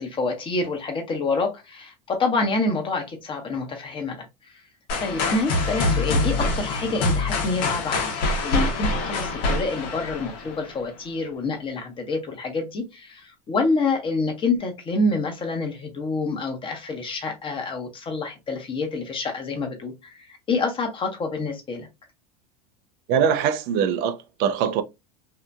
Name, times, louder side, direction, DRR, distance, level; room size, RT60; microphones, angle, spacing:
voice 1, 0.0-4.3 5.0-21.9, left 3 dB, 25° left, 1.0 m, -27 dB
sound 1, 4.9-10.8, left 2 dB, 60° left, 1.1 m, -25 dB
voice 2, 23.1-24.8, right 7 dB, 55° right, 0.5 m, -22 dB
2.8 x 2.4 x 2.2 m
hypercardioid pair, 100°, 19 cm